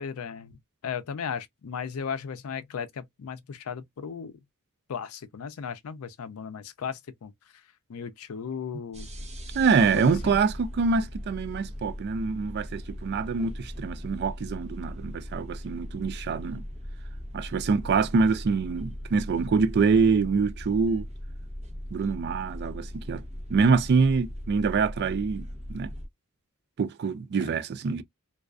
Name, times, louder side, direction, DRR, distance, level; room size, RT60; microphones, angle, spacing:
voice 1, 0.0-4.3 4.9-7.6 7.9-9.1 9.7-10.4 22.6-22.7 27.4-27.5, left 6 dB, 85° left, 0.4 m, -36 dB
sound 1, 8.9-26.1, equal, 30° right, 0.7 m, -39 dB
voice 2, 9.5-16.6 17.3-21.0 21.9-23.2 23.5-25.9 26.8-28.0, right 5 dB, 50° right, 0.3 m, -25 dB
2.3 x 2.3 x 2.3 m
head